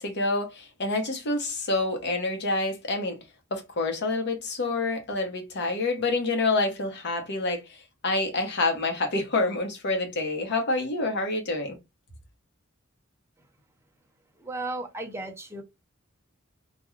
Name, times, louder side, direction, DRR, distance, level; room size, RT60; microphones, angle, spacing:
voice 1, 0.0-3.2 3.5-11.8, left 2 dB, 55° left, 0.8 m, -27 dB
voice 2, 14.4-15.6, right 2 dB, 10° right, 0.6 m, -35 dB
2.3 x 2.2 x 2.9 m
head